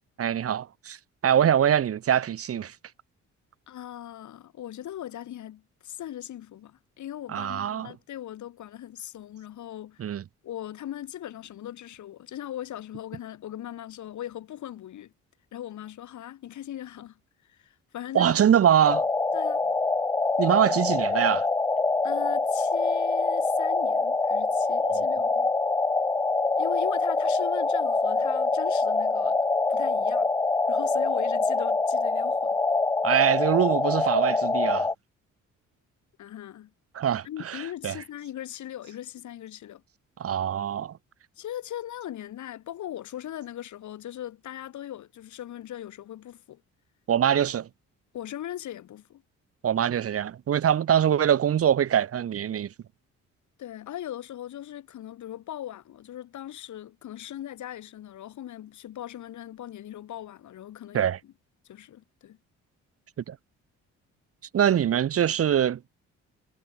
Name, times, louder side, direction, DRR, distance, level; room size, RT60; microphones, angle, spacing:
voice 1, 0.2-1.0 1.2-2.7 7.3-7.9 10.0-10.2 18.1-19.1 20.4-21.5 24.8-25.1 33.0-34.9 36.9-37.9 40.2-41.0 47.1-47.6 49.6-52.7 60.9-61.2 63.3-63.4 64.5-65.8, right 9 dB, 50° right, 1.0 m, -23 dB
voice 2, 3.7-10.1 10.4-15.1 15.5-17.2 17.5-18.4 19.3-19.7 20.7-20.8 22.0-25.5 26.6-29.4 29.7-30.3 30.7-32.6 36.2-36.7 37.2-39.8 41.4-46.6 47.4-47.5 48.1-49.2 53.6-61.3 61.6-62.4, left 12 dB, 75° left, 4.2 m, -39 dB
sound 1, 18.9-34.9, left 3 dB, 10° left, 0.4 m, -25 dB
cardioid pair, 90°, 30 cm